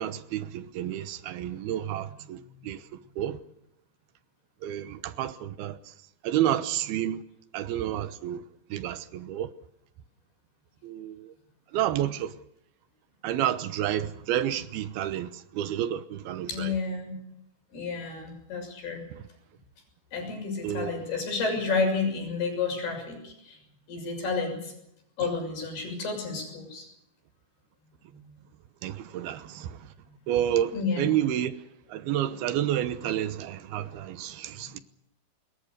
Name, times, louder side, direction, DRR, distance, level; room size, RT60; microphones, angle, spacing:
voice 1, 0.0-2.8 3.2-3.4 4.6-5.8 6.2-7.2 7.5-8.4 8.7-9.5 10.8-11.3 11.7-12.3 13.2-15.3 15.5-16.7 20.6-21.0 28.8-29.7 30.3-31.5 31.9-34.8, right 11 dB, 75° right, 2.9 m, -30 dB
voice 2, 1.7-2.1 16.5-17.2 17.7-19.0 20.1-23.6 23.9-24.7 25.2-26.9 28.1-28.3 30.7-31.1, left 4 dB, 75° left, 8.6 m, -31 dB
24.5 x 22.0 x 6.7 m
omnidirectional pair, 4.6 m